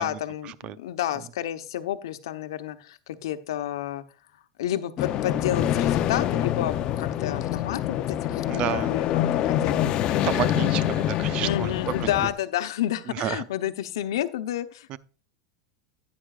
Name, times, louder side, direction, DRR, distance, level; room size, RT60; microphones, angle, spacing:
voice 1, 0.0-4.0 4.6-10.3 11.4-15.0, left 11 dB, 80° left, 1.0 m, -30 dB
sound 1, 5.0-12.3, left 11 dB, 40° left, 0.7 m, -25 dB
voice 2, 8.5-8.9 10.2-11.7 12.0-12.1 13.2-13.4 14.9-15.0, right 11 dB, 45° right, 0.6 m, -30 dB
11.0 x 9.4 x 2.5 m
supercardioid pair, 125°, 2 cm